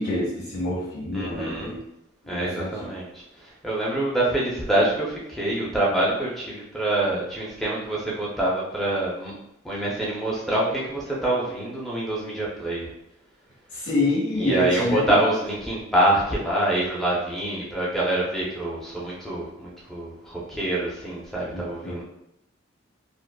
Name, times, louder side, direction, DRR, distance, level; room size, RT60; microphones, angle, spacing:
voice 1, 0.0-1.8 2.3-2.9 13.7-15.2 21.5-22.0, left 1 dB, 60° left, -13 dB, 1.2 m, -27 dB
voice 2, 1.1-1.7 2.3-9.3 9.6-12.9 14.4-22.0, right 1 dB, ahead, -6 dB, 0.6 m, -26 dB
5.0 x 2.0 x 2.3 m, 0.82 s
head